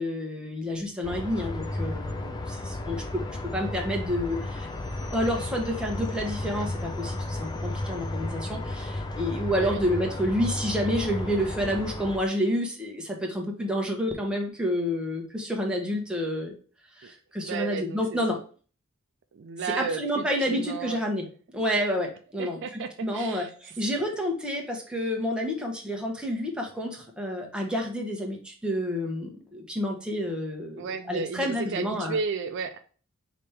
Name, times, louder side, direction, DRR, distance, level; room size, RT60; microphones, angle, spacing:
voice 1, 0.0-4.7 5.1-16.5 17.0-18.4 19.8-21.3 21.5-22.6 23.0-32.2, equal, 5° right, 0 dB, 0.9 m, -29 dB
sound 1, 1.0-12.2, left 2 dB, 20° left, 0.5 m, -33 dB
voice 2, 17.4-18.2 19.3-21.0 22.4-23.5 30.8-32.8, right 5 dB, 60° right, 8 dB, 0.4 m, -33 dB
5.0 x 2.9 x 3.3 m, 0.40 s
head